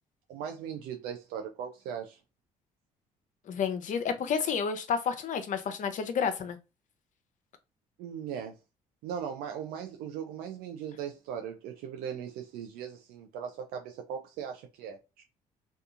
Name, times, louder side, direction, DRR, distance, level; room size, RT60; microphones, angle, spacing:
voice 1, 0.3-2.2 8.0-8.6 9.0-15.2, right 8 dB, 80° right, 0.4 m, -39 dB
voice 2, 3.5-6.6, left 6 dB, 55° left, 0.6 m, -30 dB
2.7 x 2.3 x 2.4 m
supercardioid pair, 65°, 15 cm